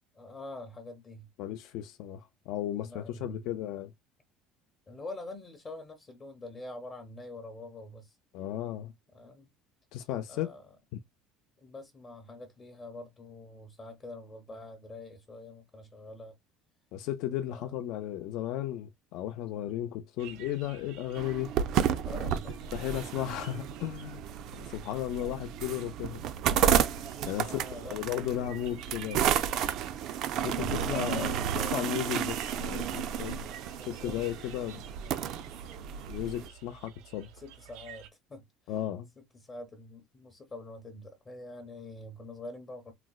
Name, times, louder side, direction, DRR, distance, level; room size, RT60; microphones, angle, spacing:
voice 1, 0.1-1.3 2.8-3.4 4.9-8.2 9.1-9.5 10.3-10.8 11.6-16.4 17.5-17.7 21.9-22.9 27.4-28.5 30.3-32.0 33.8-34.2 37.3-38.7 39.2-42.9, left 2 dB, 20° left, 0.6 m, -45 dB
voice 2, 1.4-3.9 8.3-8.9 9.9-10.5 16.9-21.5 22.7-24.2 24.6-26.3 27.3-29.4 30.4-31.4 31.7-33.5 33.8-34.8 36.1-37.3 38.7-39.1, left 12 dB, 65° left, 0.3 m, -35 dB
sound 1, 20.2-38.1, right 10 dB, 75° right, 0.8 m, -50 dB
sound 2, 21.2-36.5, right 9 dB, 50° right, 0.4 m, -32 dB
3.9 x 2.0 x 2.3 m
cardioid pair, 150°, 0 cm